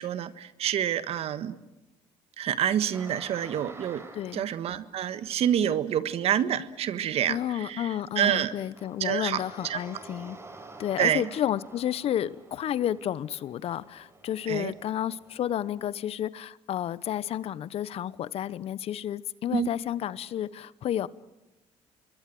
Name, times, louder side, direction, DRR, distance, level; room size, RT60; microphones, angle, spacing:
voice 1, 0.0-1.5 2.4-4.0 4.3-7.9 8.2-8.5 9.0-9.8 11.0-11.2 14.5-14.7 19.5-19.7, right 10 dB, 60° right, 13 dB, 1.5 m, -27 dB
sound 1, 2.9-4.7 7.8-8.0 8.4-16.1, right 2 dB, 25° right, 4.9 m, -49 dB
voice 2, 4.1-4.5 7.3-10.4 10.8-21.1, left 11 dB, 60° left, 19 dB, 0.9 m, -31 dB
26.0 x 22.5 x 7.7 m, 1.0 s
supercardioid pair, 70°, 11 cm